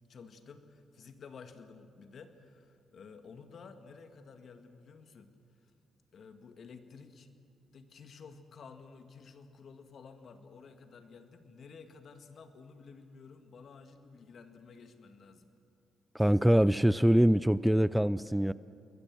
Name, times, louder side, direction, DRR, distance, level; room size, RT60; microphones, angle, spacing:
voice 1, 0.1-5.3 5.6-5.7 6.1-7.3 7.7-15.5, left 5 dB, 60° left, 7 dB, 2.0 m, -52 dB
voice 2, 16.1-18.5, equal, 5° right, 17 dB, 0.5 m, -24 dB
28.0 x 21.0 x 6.2 m, 2.5 s
hypercardioid pair, 50°, 0 cm